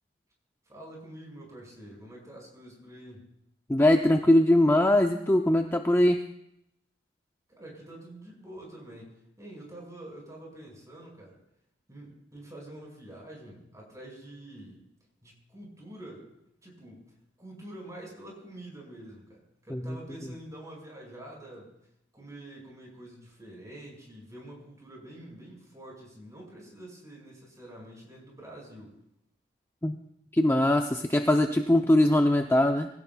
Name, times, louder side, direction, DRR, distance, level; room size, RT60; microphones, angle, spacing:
voice 1, 0.6-3.3 7.5-11.4 11.9-14.8 15.2-16.3 16.6-21.7 22.1-29.0, right 1 dB, 20° right, -2 dB, 5.1 m, -46 dB
voice 2, 3.7-6.2 19.7-20.0 29.8-30.0 30.3-32.9, left 1 dB, 15° left, 4 dB, 0.5 m, -22 dB
23.5 x 16.5 x 2.3 m, 0.81 s
head